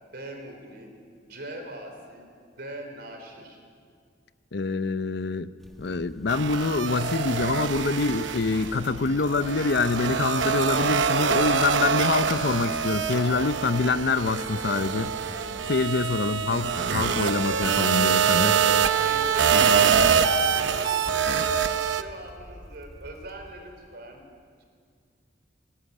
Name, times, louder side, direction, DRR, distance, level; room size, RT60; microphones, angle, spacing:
voice 1, 0.0-0.9 1.2-2.2 2.5-3.6 18.3-20.0 20.4-21.6 21.9-24.2 24.6-24.7, right 1 dB, 60° right, 3 dB, 4.3 m, -40 dB
voice 2, 4.5-5.5 5.8-15.1 15.7-18.5, left 3 dB, 65° left, 13 dB, 0.7 m, -26 dB
sound 1, 5.6-23.9, equal, ahead, 1.5 m, -48 dB
sound 2, 6.3-8.9 9.2-22.0, right 6 dB, 85° right, 0.9 m, -24 dB
sound 3, 7.0-13.9, left 2 dB, 45° left, 1.2 m, -47 dB
20.5 x 15.5 x 9.7 m, 2.1 s
head